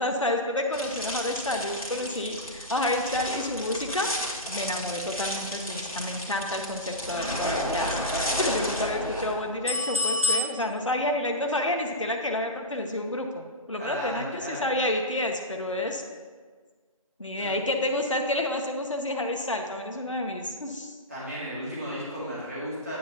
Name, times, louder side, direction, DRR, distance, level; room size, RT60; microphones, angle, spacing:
voice 1, 0.0-8.1 8.4-16.0 17.2-20.9, left 1 dB, 60° left, 3 dB, 0.7 m, -29 dB
sound 1, 0.7-10.4, left 1 dB, 75° left, 1.4 m, -31 dB
voice 2, 13.8-14.7 17.4-17.5 21.1-23.0, equal, 25° right, -9 dB, 2.0 m, -34 dB
9.2 x 5.6 x 2.8 m, 1.5 s
figure-of-eight pair, 175°, 18 cm